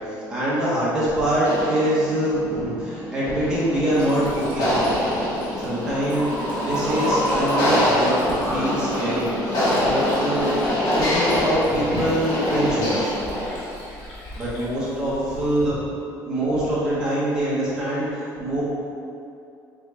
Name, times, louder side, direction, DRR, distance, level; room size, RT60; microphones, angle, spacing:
voice 1, 0.3-4.9 5.6-8.2 8.5-10.6 10.9-13.1 14.4-15.8 16.2-18.6, right 1 dB, 10° right, -9 dB, 1.0 m, -24 dB
sound 1, 1.4-13.7, left 1 dB, 60° left, 1.0 m, -25 dB
Liquid, 3.6-15.7, equal, 75° left, 1.4 m, -33 dB
4.6 x 2.6 x 3.3 m, 2.6 s
cardioid pair, 170°, 8 cm